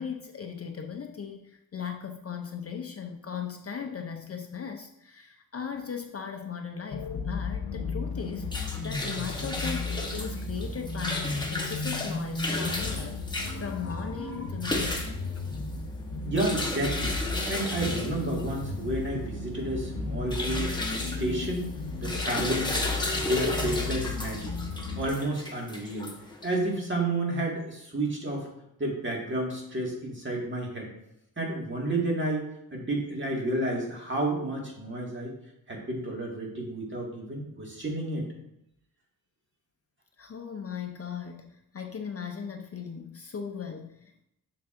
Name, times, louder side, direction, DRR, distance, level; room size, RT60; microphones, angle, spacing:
voice 1, 0.0-15.1 15.3-15.5 40.2-44.2, left 7 dB, 40° left, 4 dB, 0.6 m, -38 dB
sound 1, 6.9-25.1, left 3 dB, 75° left, 1.1 m, -34 dB
sound 2, 8.2-26.7, left 2 dB, 10° left, 1.1 m, -34 dB
voice 2, 16.2-17.2 17.5-21.7 22.0-22.8 23.1-24.5 25.0-26.1 26.4-28.5 28.8-30.9 31.4-32.4 32.7-35.3 35.7-38.3, right 1 dB, 30° right, -1 dB, 1.9 m, -31 dB
7.0 x 6.7 x 2.5 m, 0.79 s
wide cardioid pair, 105°, 37 cm